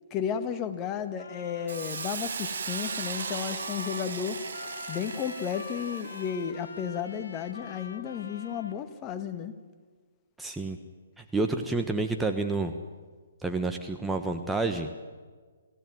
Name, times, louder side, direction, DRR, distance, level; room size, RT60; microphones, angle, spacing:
voice 1, 0.1-4.4 4.9-9.5, left 8 dB, 25° left, 8 dB, 1.8 m, -33 dB
Trumpet, 1.2-8.8, left 4 dB, 70° left, 2.4 m, -44 dB
Hiss, 1.7-6.4, right 6 dB, 65° right, 2.4 m, -37 dB
voice 2, 10.4-10.8 11.2-12.7 13.4-15.1, right 3 dB, 5° right, 4 dB, 1.3 m, -29 dB
29.0 x 15.5 x 9.3 m, 1.5 s
hypercardioid pair, 140°, 0 cm